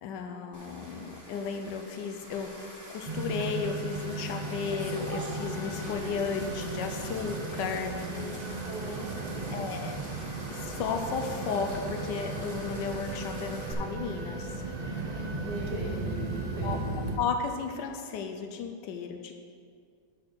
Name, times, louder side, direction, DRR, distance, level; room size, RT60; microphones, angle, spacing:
voice 1, 0.0-7.9 9.5-10.0 10.5-14.6 16.6-16.8 17.2-19.3, left 5 dB, 90° left, 4 dB, 1.3 m, -34 dB
sound 1, 0.5-13.7, equal, 10° right, 1.4 m, -45 dB
sound 2, 3.0-17.2, right 2 dB, 45° right, 0.5 m, -36 dB
sound 3, 3.9-13.5, left 5 dB, 70° left, 1.3 m, -52 dB
voice 2, 8.6-10.0 13.5-13.7 15.4-17.1, right 1 dB, 75° right, -4 dB, 1.8 m, -40 dB
10.5 x 4.3 x 6.3 m, 2.2 s
omnidirectional pair, 1.9 m